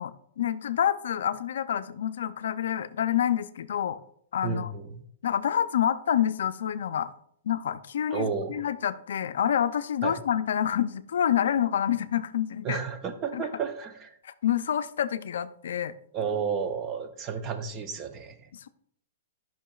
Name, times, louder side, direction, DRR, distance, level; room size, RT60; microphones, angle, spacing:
voice 1, 0.0-4.0 4.3-4.7 5.2-7.1 7.4-12.8 13.3-13.5 14.2-15.9, left 9 dB, 75° left, 13 dB, 0.4 m, -27 dB
voice 2, 4.4-5.0 8.1-8.6 10.0-10.1 12.6-14.2 16.1-18.5, right 6 dB, 25° right, 8 dB, 0.6 m, -32 dB
10.0 x 5.8 x 2.3 m, 0.66 s
hypercardioid pair, 150°, 0 cm